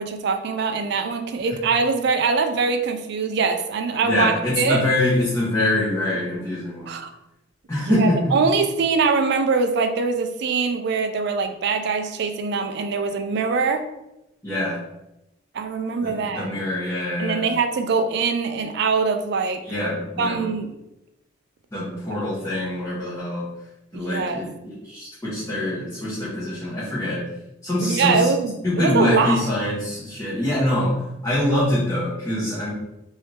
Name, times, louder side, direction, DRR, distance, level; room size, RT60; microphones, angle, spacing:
voice 1, 0.0-4.8 6.9-7.1 7.9-13.9 15.5-16.5 17.2-19.6 20.2-20.7 22.1-22.2 23.9-24.4 27.8-29.4, right 4 dB, 60° right, 7 dB, 0.4 m, -23 dB
voice 2, 4.0-6.9 7.7-8.4 14.4-14.8 16.0-17.5 19.6-20.4 21.7-23.5 23.9-27.2 27.6-28.3 28.6-32.7, left 1 dB, 15° left, -10 dB, 0.9 m, -24 dB
3.2 x 2.7 x 3.2 m, 0.91 s
head